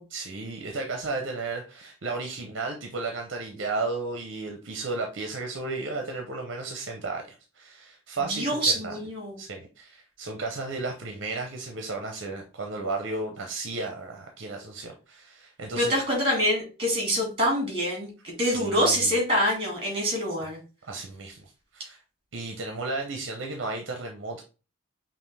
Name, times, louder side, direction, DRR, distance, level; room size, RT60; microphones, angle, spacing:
voice 1, 0.1-7.2 7.5-9.0 9.4-15.9 18.4-19.1 20.8-21.4 21.7-22.0 22.3-24.4, right 3 dB, 60° right, 3 dB, 0.7 m, -34 dB
voice 2, 8.2-9.4 15.8-20.6, equal, 25° right, 0 dB, 2.1 m, -25 dB
5.5 x 2.5 x 3.3 m, 0.33 s
head